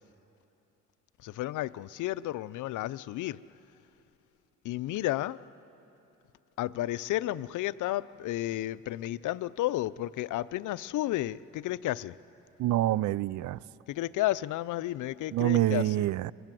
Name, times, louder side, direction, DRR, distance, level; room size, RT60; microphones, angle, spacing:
voice 1, 1.2-3.4 4.6-5.4 6.6-12.1 13.9-16.1, left 15 dB, 80° left, 17 dB, 0.6 m, -32 dB
voice 2, 12.6-13.6 15.3-16.3, right 14 dB, 70° right, 22 dB, 0.5 m, -26 dB
29.0 x 23.5 x 7.6 m, 3.0 s
cardioid pair, 90°, 30 cm